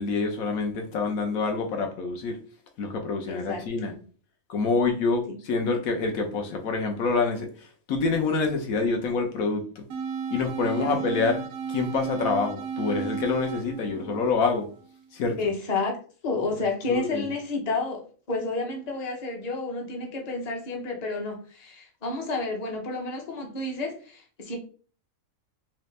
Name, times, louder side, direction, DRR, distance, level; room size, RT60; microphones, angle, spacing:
voice 1, 0.0-2.4 2.8-3.9 4.5-9.8 10.3-14.7 15.1-15.4 16.9-17.3, left 4 dB, 80° left, 4 dB, 1.2 m, -27 dB
voice 2, 3.3-3.6 10.7-11.0 15.4-15.9 16.2-18.0 18.3-24.5, left 3 dB, 35° left, 1 dB, 0.8 m, -30 dB
sound 1, 9.9-14.9, right 6 dB, 85° right, 1.1 m, -33 dB
3.3 x 2.9 x 3.2 m, 0.41 s
omnidirectional pair, 1.4 m